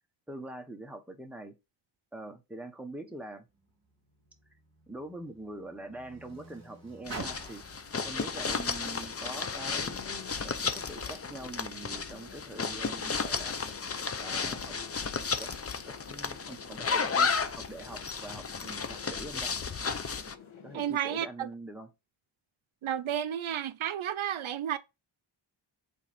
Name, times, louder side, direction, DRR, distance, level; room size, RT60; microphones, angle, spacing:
voice 1, 0.3-1.5 2.1-3.5 4.9-7.6 8.0-13.6 14.2-14.7 15.4-15.5 15.9-19.5 20.6-21.9, right 1 dB, 5° right, 1.2 m, -44 dB
Car, 3.5-10.1 10.9-11.0, right 3 dB, 30° right, 4.4 m, -49 dB
sound 1, 7.1-20.3, left 5 dB, 30° left, 0.6 m, -33 dB
sound 2, 8.3-21.0, left 6 dB, 75° left, 1.3 m, -51 dB
voice 2, 20.7-21.5 22.8-24.8, right 10 dB, 75° right, 0.6 m, -32 dB
8.2 x 3.9 x 3.5 m
wide cardioid pair, 120°, 48 cm